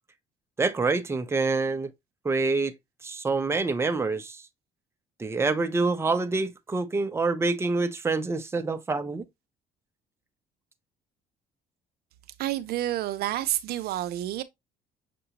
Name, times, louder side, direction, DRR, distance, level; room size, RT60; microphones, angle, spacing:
voice 1, 0.6-1.9 2.2-2.7 3.0-4.4 5.2-9.2, right 3 dB, 15° right, 0.6 m, -26 dB
voice 2, 12.4-14.4, right 13 dB, 65° right, 0.5 m, -29 dB
6.6 x 2.6 x 2.9 m
cardioid pair, 110°, 17 cm